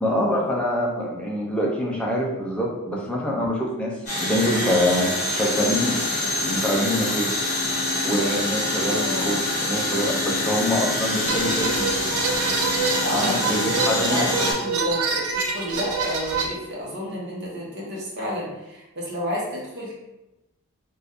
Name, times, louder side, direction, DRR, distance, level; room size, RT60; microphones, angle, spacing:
voice 1, 0.0-6.0 6.4-7.3 8.0-11.9 13.1-14.5, equal, 5° left, -3 dB, 0.5 m, -25 dB
sound 1, 4.1-14.5, left 2 dB, 35° left, 1.3 m, -25 dB
voice 2, 8.8-9.4 13.0-13.5 13.8-14.3 14.6-19.9, equal, 50° right, -5 dB, 1.0 m, -30 dB
sound 2, 11.3-16.5, right 4 dB, 80° right, 0.5 m, -26 dB
3.6 x 2.5 x 2.7 m, 0.98 s
head